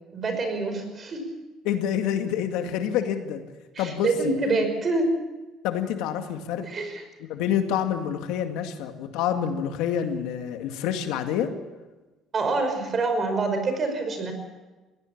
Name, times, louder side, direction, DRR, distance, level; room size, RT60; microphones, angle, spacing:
voice 1, 0.1-1.3 3.0-3.1 3.7-5.1 6.6-7.0 12.3-14.3, right 3 dB, 35° right, 6 dB, 5.4 m, -26 dB
voice 2, 1.6-3.4 3.8-4.3 5.6-6.7 7.3-11.5, left 9 dB, 85° left, 6 dB, 2.1 m, -27 dB
21.5 x 17.5 x 7.4 m, 1.2 s
cardioid pair, 120°, 0 cm